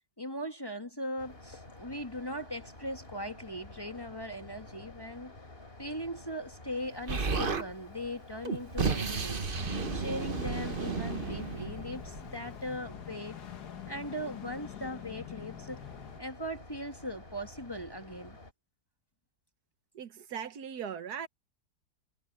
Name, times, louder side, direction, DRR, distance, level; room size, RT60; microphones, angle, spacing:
voice 1, 0.2-5.3 5.8-9.4 9.9-13.4 13.9-15.8 16.2-18.4, equal, 15° left, 1.5 m, -39 dB
sound 1, 1.2-18.5, left 2 dB, 35° left, 3.6 m, -51 dB
Explosion, 7.1-7.7 8.4-12.3, right 4 dB, 35° right, 1.3 m, -33 dB
sound 2, 9.6-16.2, left 10 dB, 75° left, 1.7 m, -46 dB
voice 2, 19.9-21.3, right 8 dB, 70° right, 1.5 m, -39 dB
omnidirectional pair, 1.8 m